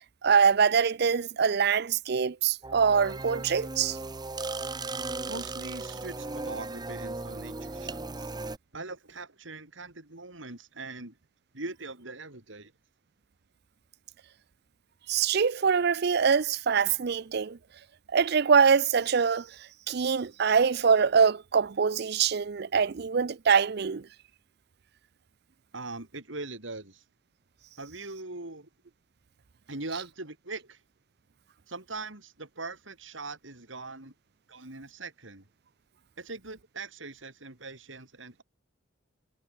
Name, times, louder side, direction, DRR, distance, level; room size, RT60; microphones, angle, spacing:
voice 1, 0.2-4.0 15.1-17.6 18.1-19.5 19.9-24.0, right 6 dB, 55° right, 0.5 m, -24 dB
sound 1, 2.6-8.6, right 3 dB, 20° right, 0.9 m, -37 dB
voice 2, 5.3-8.3 8.7-11.2 11.5-12.7 25.7-27.0 27.8-28.7 29.7-30.8 31.7-34.1 34.5-35.4 36.2-38.4, right 3 dB, 80° right, 3.9 m, -41 dB
head